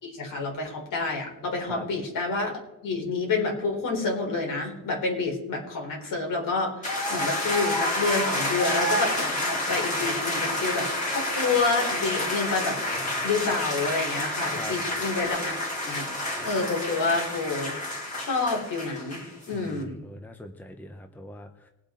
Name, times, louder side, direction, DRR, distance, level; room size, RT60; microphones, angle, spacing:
voice 1, 0.0-6.8 7.1-12.8 13.2-15.5 15.8-16.1 16.4-17.7 18.2-19.2 19.5-20.0, left 3 dB, 65° left, 0 dB, 4.1 m, -28 dB
sound 1, 6.8-19.5, left 1 dB, 20° left, 3.3 m, -29 dB
voice 2, 19.5-21.7, left 1 dB, 5° left, 6 dB, 0.8 m, -42 dB
20.5 x 7.9 x 3.9 m, 0.97 s
cardioid pair, 170°, 35 cm